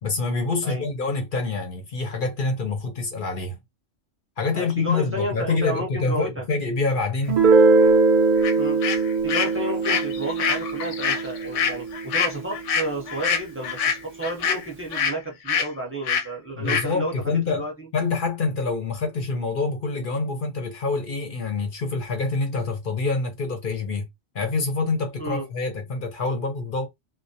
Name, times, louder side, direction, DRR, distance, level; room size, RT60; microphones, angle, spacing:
voice 1, 0.0-3.6 4.4-7.4 16.5-17.6 17.9-24.1 24.3-26.9, left 3 dB, 55° left, 0.7 m, -26 dB
voice 2, 4.5-6.4 8.6-8.8 9.2-17.9 25.2-25.5, right 1 dB, 15° right, 0.7 m, -31 dB
Guitar, 7.3-12.8, right 3 dB, 50° right, 0.6 m, -21 dB
sound 1, 8.4-8.5 8.8-15.2 15.5-15.7 16.0-16.3 16.7-16.9, left 6 dB, 85° left, 0.9 m, -25 dB
2.3 x 2.1 x 2.6 m
omnidirectional pair, 1.3 m